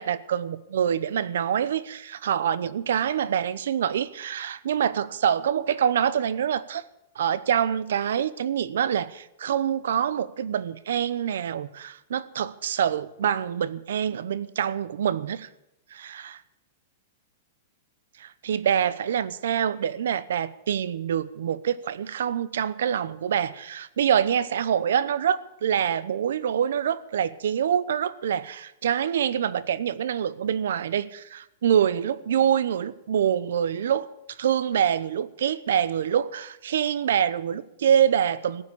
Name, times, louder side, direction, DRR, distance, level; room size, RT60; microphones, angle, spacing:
voice 1, 0.0-6.8 7.2-15.5 15.9-16.4 18.2-34.1 34.4-38.6, right 9 dB, 80° right, 18 dB, 0.8 m, -25 dB
14.5 x 9.6 x 8.5 m, 0.86 s
supercardioid pair, 165°, 0 cm